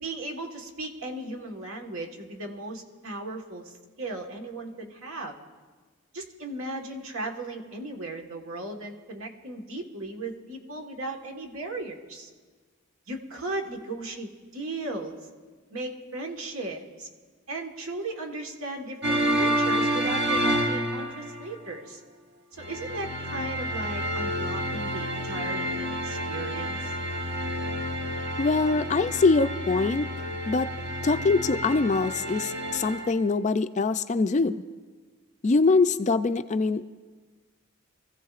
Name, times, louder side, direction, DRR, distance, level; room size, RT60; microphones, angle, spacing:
voice 1, 0.0-5.4 6.1-12.3 13.1-15.2 15.7-17.1 17.5-22.0 22.6-26.8, right 2 dB, 75° right, 2 dB, 1.5 m, -36 dB
sound 1, 19.0-21.5 22.6-33.1, equal, 50° right, 1.0 m, -29 dB
voice 2, 28.4-30.1 30.5-30.7 31.0-34.6 35.4-36.8, left 3 dB, 35° left, 11 dB, 0.3 m, -23 dB
25.0 x 15.0 x 2.5 m, 1.5 s
head